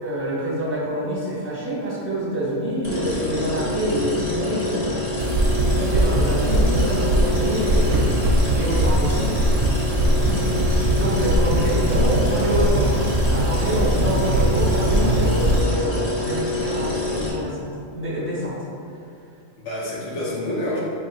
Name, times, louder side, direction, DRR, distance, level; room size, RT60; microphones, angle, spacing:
voice 1, 0.0-5.1 5.7-8.1 8.5-9.4 9.7-9.8 10.2-17.7 17.9-19.0, right 1 dB, 15° right, -7 dB, 0.7 m, -26 dB
sound 1, 2.8-17.3, left 2 dB, 25° left, 0.7 m, -27 dB
sound 2, 5.2-15.6, right 1 dB, 90° right, 1.0 m, -21 dB
voice 2, 9.9-10.5 19.6-20.8, left 1 dB, 75° left, -6 dB, 1.1 m, -29 dB
3.9 x 3.1 x 2.8 m, 2.4 s
omnidirectional pair, 1.2 m